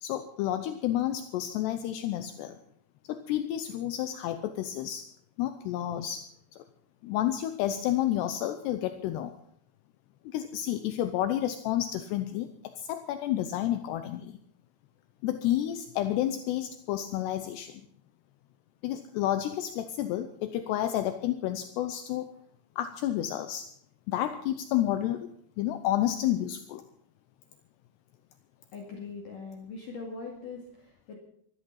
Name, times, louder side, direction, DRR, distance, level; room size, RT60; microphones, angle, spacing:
voice 1, 0.0-2.6 3.1-5.1 5.4-6.3 6.5-6.6 7.0-9.3 10.3-12.5 12.8-14.4 15.2-17.8 18.8-22.3 22.8-23.7 24.1-25.3 25.6-26.8, left 12 dB, 80° left, 9 dB, 2.4 m, -30 dB
voice 2, 28.7-31.2, left 4 dB, 50° left, 0 dB, 3.2 m, -41 dB
17.0 x 13.0 x 5.7 m, 0.67 s
omnidirectional pair, 5.8 m